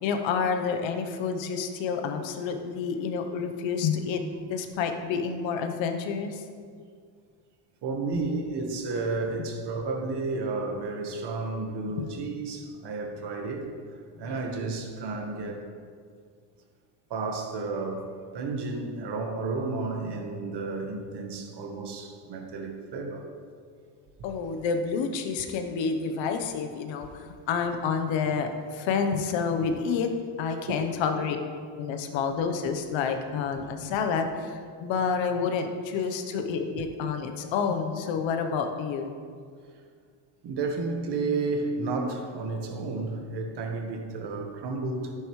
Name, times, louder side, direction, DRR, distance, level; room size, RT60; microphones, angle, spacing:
voice 1, 0.0-6.4 8.1-8.2 12.0-12.1 14.1-14.5 24.2-30.1 30.4-31.4 31.7-39.1, left 5 dB, 85° left, 6 dB, 1.1 m, -29 dB
voice 2, 7.8-13.7 14.2-15.7 17.1-23.3 30.7-30.9 40.4-45.1, right 3 dB, 65° right, 3 dB, 1.5 m, -32 dB
11.0 x 9.2 x 3.2 m, 2.1 s
cardioid pair, 80°, 45 cm